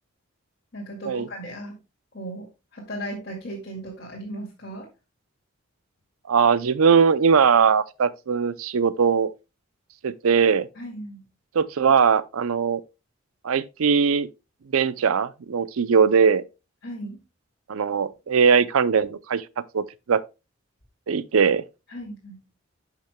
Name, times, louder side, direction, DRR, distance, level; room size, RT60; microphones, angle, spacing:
voice 1, 0.7-1.8 2.1-4.9 10.8-11.3 16.8-17.2 21.9-22.4, right 1 dB, 50° left, 2.2 m, -36 dB
voice 2, 6.3-9.3 10.0-10.7 11.5-12.8 13.4-14.3 14.7-16.4 17.7-19.4 19.7-20.2 21.1-21.6, right 6 dB, 85° right, 0.5 m, -20 dB
11.5 x 5.9 x 2.2 m
head